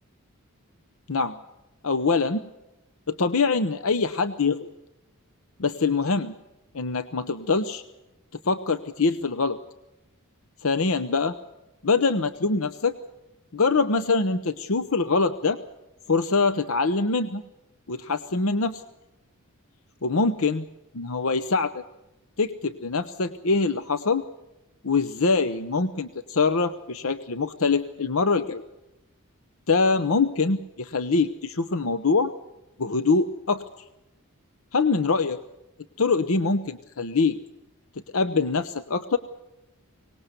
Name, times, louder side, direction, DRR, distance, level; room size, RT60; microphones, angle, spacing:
voice 1, 1.8-2.4 3.1-4.7 5.6-6.3 6.7-7.8 8.5-9.6 10.6-11.3 11.8-12.9 13.5-15.6 16.1-17.4 17.9-18.8 20.0-20.7 20.9-21.8 22.4-24.2 24.8-28.6 29.7-32.3 32.8-33.6 34.7-35.4 36.0-37.4 38.1-39.2, left 4 dB, 70° left, 11 dB, 0.8 m, -24 dB
24.0 x 19.5 x 6.8 m, 0.96 s
head